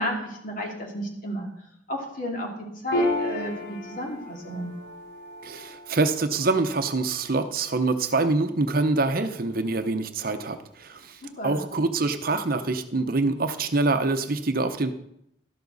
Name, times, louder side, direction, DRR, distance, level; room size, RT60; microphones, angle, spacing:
voice 1, 0.0-1.5 1.9-4.7 11.4-11.6, equal, 45° left, 1 dB, 2.6 m, -32 dB
Piano, 2.9-9.8, left 1 dB, 80° left, 4.0 m, -34 dB
voice 2, 5.4-14.9, right 3 dB, 50° right, 8 dB, 0.8 m, -25 dB
12.5 x 12.0 x 4.1 m, 0.76 s
head